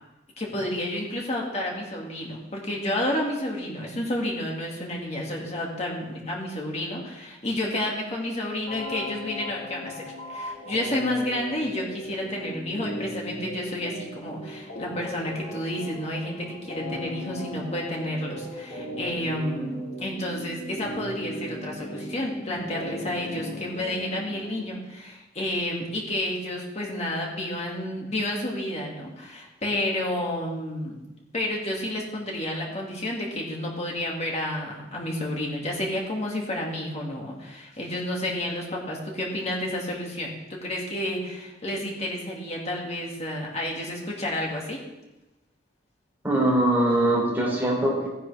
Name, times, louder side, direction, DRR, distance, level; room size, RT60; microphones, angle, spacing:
voice 1, 0.4-31.0 31.3-44.8, left 1 dB, 35° left, -2 dB, 2.2 m, -30 dB
sound 1, 8.7-24.7, left 1 dB, 65° left, 3.2 m, -37 dB
voice 2, 46.2-48.1, right 1 dB, 10° right, -4 dB, 3.3 m, -22 dB
14.5 x 10.5 x 3.5 m, 1.0 s
head